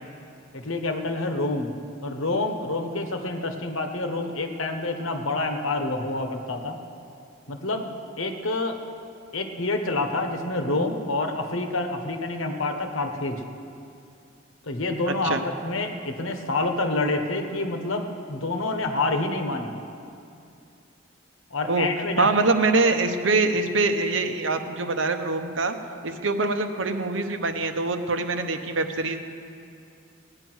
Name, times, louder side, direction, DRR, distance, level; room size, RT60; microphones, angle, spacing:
voice 1, 0.5-1.7 2.0-6.8 7.5-7.9 8.2-8.8 9.3-13.4 14.6-15.4 15.6-19.7 21.5-22.3, left 2 dB, 80° left, 5 dB, 1.3 m, -27 dB
voice 2, 22.2-25.7 26.0-29.2, right 3 dB, 70° right, 6 dB, 0.9 m, -24 dB
17.5 x 9.9 x 6.3 m, 2.5 s
head